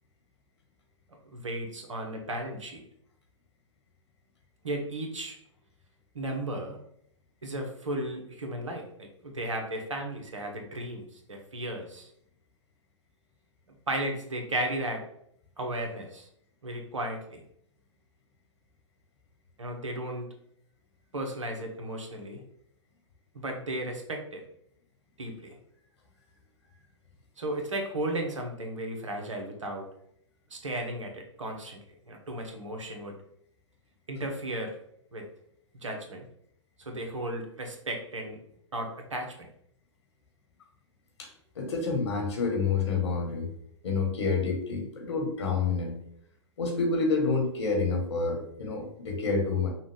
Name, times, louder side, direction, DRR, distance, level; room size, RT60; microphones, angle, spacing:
voice 1, 1.3-2.8 4.6-5.4 6.1-6.8 7.4-12.1 13.9-15.0 15.6-16.3 16.6-17.4 19.6-20.3 21.1-22.4 23.3-24.4 25.2-25.6 27.4-29.8 30.5-31.8 32.0-33.1 34.1-34.7 35.1-35.2 35.8-36.2 36.8-38.4 38.7-39.5, right 1 dB, 75° right, 3 dB, 1.2 m, -35 dB
voice 2, 41.5-43.5 43.8-45.9 46.6-49.7, left 4 dB, 60° left, 2 dB, 1.6 m, -28 dB
5.8 x 2.4 x 3.7 m, 0.70 s
figure-of-eight pair, 110°, 16 cm